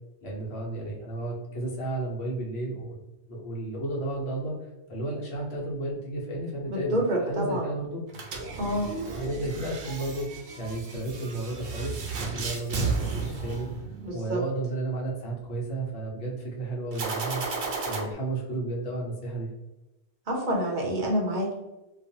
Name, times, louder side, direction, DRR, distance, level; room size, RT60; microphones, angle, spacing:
voice 1, 0.2-3.0 3.3-4.5 4.9-8.0 9.1-13.7 14.1-19.5, right 2 dB, 70° left, -3 dB, 1.1 m, -33 dB
voice 2, 6.7-7.7 8.6-8.9 14.0-14.4 20.3-21.5, right 1 dB, 50° right, -1 dB, 0.8 m, -27 dB
sound 1, 8.1-14.3 16.9-18.0, right 4 dB, 80° right, 0.9 m, -34 dB
2.5 x 2.3 x 2.7 m, 0.98 s
omnidirectional pair, 1.1 m